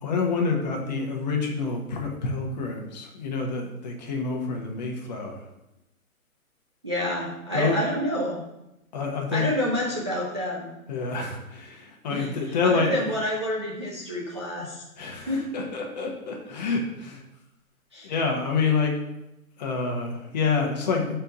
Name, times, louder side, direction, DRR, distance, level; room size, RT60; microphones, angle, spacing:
voice 1, 0.0-5.4 7.5-7.8 8.9-9.5 10.9-13.0 15.0-17.2 18.0-18.9 19.6-21.2, left 4 dB, 30° left, 1 dB, 1.1 m, -27 dB
voice 2, 6.8-8.4 9.3-10.7 12.1-14.8 15.2-15.4 17.9-18.1, equal, 20° right, -5 dB, 0.4 m, -28 dB
6.0 x 4.5 x 5.3 m, 0.91 s
hypercardioid pair, 155°, 43 cm